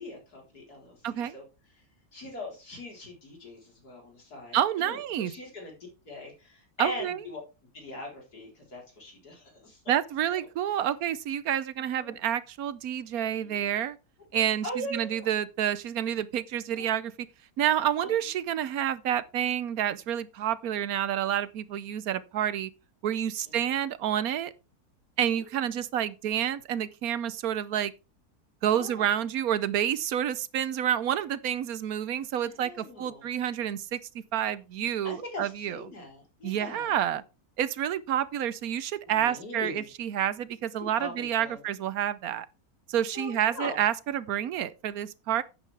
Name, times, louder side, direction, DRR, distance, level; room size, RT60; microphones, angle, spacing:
voice 1, 0.0-1.4 2.1-5.7 6.1-7.4 7.7-9.8 10.3-10.4 12.0-12.2 13.4-13.6 14.3-15.3 16.8-16.9 18.0-18.2 23.5-23.7 25.2-25.5 28.7-29.2 32.4-33.3 35.0-37.0 39.1-39.9 40.8-41.6 43.1-43.8, left 1 dB, 85° left, 4.5 m, -41 dB
voice 2, 1.0-1.4 4.5-5.3 6.8-7.2 9.9-14.0 14.3-14.6 14.9-17.1 17.6-22.7 23.0-24.5 25.2-27.9 28.6-34.0 34.3-35.8 36.4-37.2 37.6-42.5 42.9-45.4, right 10 dB, 75° right, 1.2 m, -29 dB
10.5 x 9.1 x 3.4 m
omnidirectional pair, 1.6 m